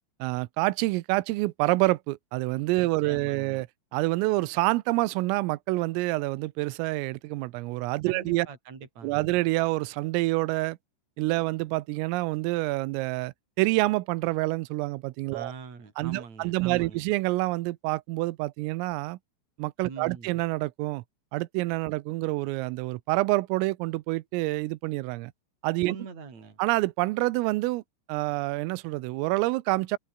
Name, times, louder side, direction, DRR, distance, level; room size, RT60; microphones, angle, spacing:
voice 1, 0.2-3.7 3.9-8.5 9.0-10.8 11.2-15.5 16.0-19.2 19.6-21.0 21.3-25.3 25.6-26.0 26.6-27.8 28.1-30.0, right 21 dB, 85° right, 3.4 m, -27 dB
voice 2, 2.8-3.6 8.1-9.3 15.3-17.0 19.9-20.4 25.8-26.6, right 5 dB, 35° right, 5.8 m, -43 dB
open air
omnidirectional pair, 5.9 m